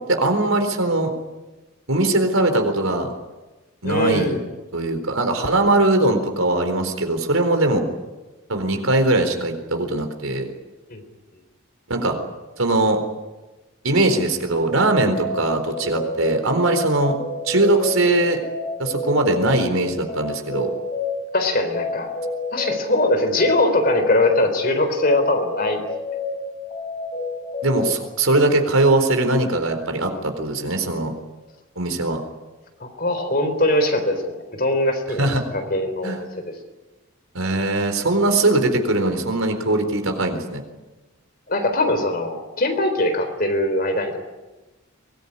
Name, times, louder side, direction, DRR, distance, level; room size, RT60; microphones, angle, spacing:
voice 1, 0.1-1.1 1.9-3.1 3.8-4.3 4.7-7.9 8.5-10.5 11.9-12.2 12.6-13.0 13.8-17.2 17.5-18.4 18.8-20.7 27.6-31.1 31.8-32.2 35.2-35.4 36.0-36.2 37.3-40.6, right 2 dB, 75° right, 6 dB, 4.1 m, -20 dB
voice 2, 3.8-4.4 10.9-11.0 21.3-22.1 22.5-25.8 32.8-36.5 41.5-44.2, left 1 dB, 45° left, 6 dB, 4.0 m, -21 dB
sound 1, 14.7-27.9, left 3 dB, 25° left, 6.6 m, -30 dB
23.5 x 20.0 x 9.9 m, 1.1 s
head